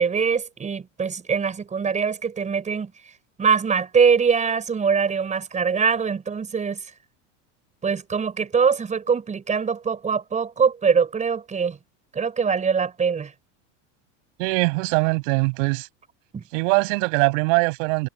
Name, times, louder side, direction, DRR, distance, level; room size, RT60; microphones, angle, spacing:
voice 1, 0.0-2.9 3.4-6.8 7.8-11.8 12.1-13.3 16.3-16.4, right 6 dB, 20° right, 5.7 m, -23 dB
voice 2, 14.4-15.9 16.5-18.1, right 30 dB, 65° right, 6.6 m, -22 dB
supercardioid pair, 145°, 39 cm